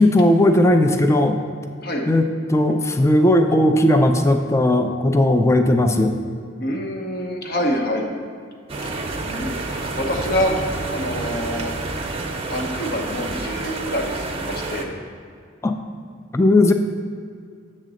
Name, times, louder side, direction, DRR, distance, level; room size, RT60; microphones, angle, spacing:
voice 1, 0.0-1.4 2.1-6.1 15.6-15.7 16.3-16.7, left 1 dB, 15° left, 6 dB, 0.4 m, -17 dB
voice 2, 6.6-8.1 9.2-10.5 10.9-11.7 12.5-14.9, equal, 55° left, 2 dB, 0.9 m, -26 dB
sound 1, 8.7-14.9, right 2 dB, 30° right, 0.6 m, -29 dB
7.4 x 3.9 x 6.3 m, 2.2 s
head